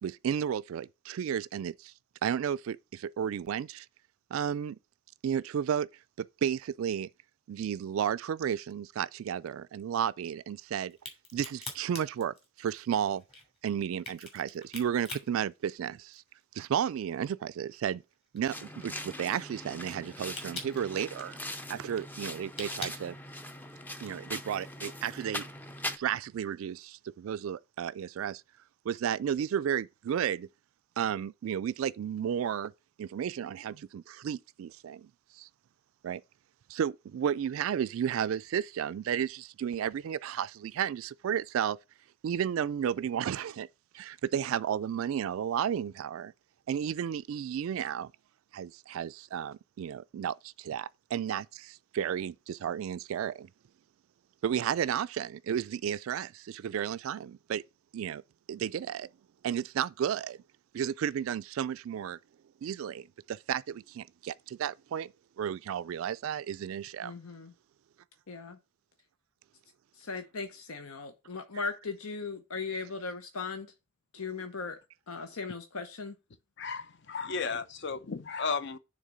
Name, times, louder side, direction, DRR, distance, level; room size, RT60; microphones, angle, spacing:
voice 1, 0.0-1.9 2.2-3.9 4.3-4.8 5.2-5.9 6.2-7.1 7.5-11.0 11.3-13.2 13.6-16.2 16.5-18.0 18.3-21.4 21.7-23.2 24.0-25.4 26.0-28.4 28.9-30.5 31.0-32.7 33.0-35.1 35.4-35.5 36.0-36.2 36.7-41.8 42.2-43.7 43.9-46.3 46.7-48.1 48.5-53.5 54.4-57.6 57.9-58.2 58.5-59.1 59.4-60.4 60.7-62.2 62.6-67.1, right 8 dB, 75° right, 0.3 m, -33 dB
Crack, 10.9-16.4 16.8-23.8, left 2 dB, 30° left, 2.4 m, -45 dB
sound 1, 18.5-26.0, left 1 dB, 10° left, 0.5 m, -41 dB
voice 2, 67.0-67.5 68.3-68.6 70.0-73.7 74.1-74.8 75.1-76.1, left 4 dB, 85° left, 0.9 m, -38 dB
voice 3, 76.6-78.8, left 5 dB, 55° left, 0.6 m, -34 dB
6.5 x 3.8 x 6.1 m
head